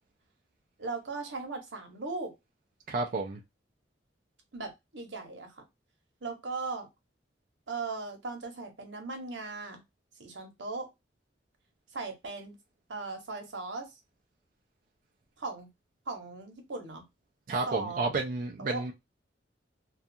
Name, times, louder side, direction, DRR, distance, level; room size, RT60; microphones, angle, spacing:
voice 1, 0.8-2.3 4.5-5.6 6.2-6.9 7.7-9.8 10.2-10.9 11.9-12.5 12.9-13.9 15.4-15.7 16.1-17.0 17.7-18.2 18.6-18.8, right 3 dB, 85° right, 0.9 m, -38 dB
voice 2, 2.9-3.4 17.5-18.9, right 3 dB, 50° right, 0.4 m, -31 dB
2.3 x 2.3 x 2.6 m
head